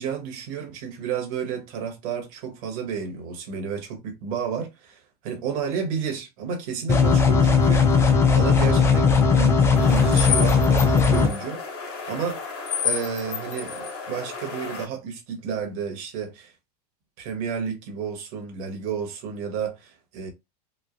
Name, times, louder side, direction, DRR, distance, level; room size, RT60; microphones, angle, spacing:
voice 1, 0.0-11.6 12.1-12.4 12.8-16.5 17.2-20.3, right 6 dB, 60° right, 1.2 m, -31 dB
sound 1, 6.9-11.3, left 5 dB, 10° left, 0.4 m, -18 dB
sound 2, 9.8-14.8, left 6 dB, 65° left, 1.3 m, -31 dB
3.1 x 2.1 x 2.5 m
supercardioid pair, 135°, 21 cm